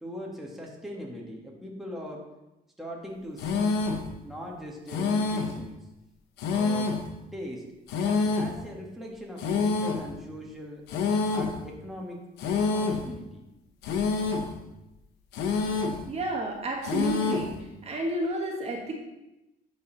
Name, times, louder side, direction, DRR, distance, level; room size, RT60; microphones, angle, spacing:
voice 1, 0.0-2.3 2.8-5.8 6.5-6.9 7.3-7.7 7.9-10.8 11.3-13.4, equal, ahead, -2 dB, 1.5 m, -40 dB
sound 1, 3.4-4.1 4.9-5.6 6.4-7.1 7.9-8.6 9.4-10.1 10.9-11.6 12.4-13.1 13.8-14.5 15.3-16.0 16.8-17.5, left 4 dB, 90° left, 0.9 m, -27 dB
voice 2, 16.1-17.5 17.8-19.0, right 1 dB, 40° right, 0 dB, 1.4 m, -31 dB
10.5 x 4.1 x 3.9 m, 0.95 s
cardioid pair, 110°, 17 cm